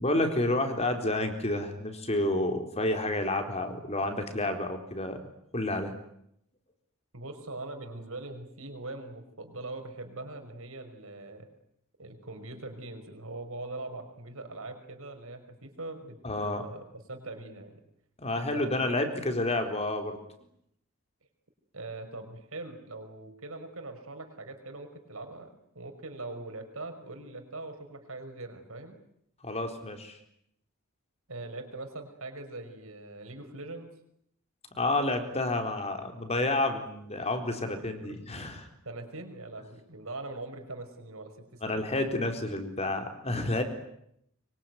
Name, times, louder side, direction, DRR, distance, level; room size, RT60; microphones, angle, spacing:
voice 1, 0.0-5.2 5.5-5.9 16.2-16.6 18.2-20.2 29.4-30.2 34.7-38.7 41.6-43.6, left 2 dB, 30° left, 6 dB, 4.1 m, -30 dB
voice 2, 7.1-11.5 12.0-17.8 18.5-19.0 21.7-29.0 31.3-33.9 37.7-38.2 38.8-41.8, right 2 dB, 75° right, 6 dB, 5.5 m, -42 dB
25.0 x 24.0 x 9.5 m, 0.74 s
head